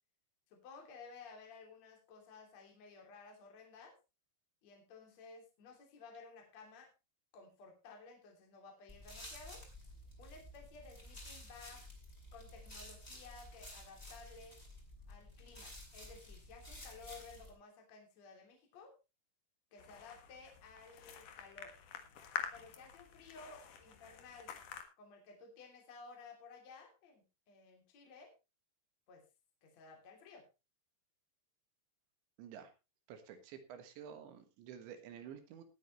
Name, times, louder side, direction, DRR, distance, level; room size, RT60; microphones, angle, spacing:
voice 1, 0.5-4.0 4.6-6.9 7.3-9.7 10.2-11.9 12.3-14.6 15.1-18.9 19.7-21.7 22.5-24.5 25.0-28.3 29.1-29.2 29.6-30.5, left 4 dB, 40° left, 2 dB, 3.6 m, -55 dB
sound 1, 8.9-17.5, left 1 dB, 10° left, 4.7 m, -52 dB
sound 2, 19.8-24.8, left 8 dB, 60° left, 2.2 m, -47 dB
voice 2, 32.4-32.7 33.1-35.6, right 8 dB, 70° right, 8 dB, 3.6 m, -51 dB
19.5 x 9.0 x 3.1 m, 0.27 s
omnidirectional pair, 5.6 m